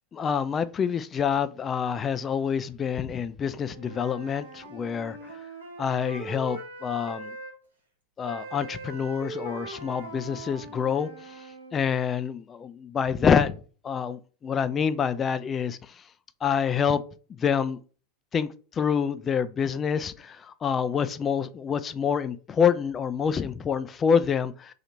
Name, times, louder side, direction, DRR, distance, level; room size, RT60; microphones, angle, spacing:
voice 1, 0.1-5.2 5.8-7.3 8.2-11.1 11.7-13.6 13.8-15.8 16.4-17.0 17.4-17.8 18.3-18.5 18.8-24.7, left 7 dB, 25° left, 0.3 m, -26 dB
Wind instrument woodwind instrument, 3.6-7.6 8.2-11.8, right 2 dB, 85° right, 0.9 m, -41 dB
2.9 x 2.4 x 4.1 m
hypercardioid pair, 90°, 0 cm